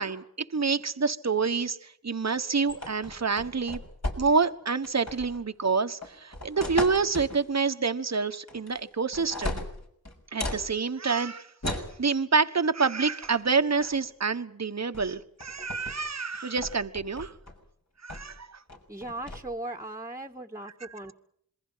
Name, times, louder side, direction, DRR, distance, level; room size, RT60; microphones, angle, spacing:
voice 1, 0.0-3.8 4.2-9.6 10.3-17.3 18.0-18.6, right 4 dB, 50° right, 8 dB, 1.3 m, -27 dB
sound 1, 2.7-4.5 4.8-5.4 6.0-7.4 8.5-8.8 9.1-10.7 11.6-11.9 13.2-13.4 13.7-14.1 14.9-15.1 15.4-16.0 16.3-17.6 18.1-18.4 18.7-19.4, left 1 dB, 50° left, 6.4 m, -36 dB
voice 2, 18.9-21.1, right 2 dB, 10° right, 1 dB, 1.8 m, -38 dB
27.0 x 22.0 x 5.8 m, 0.68 s
cardioid pair, 45°, 35 cm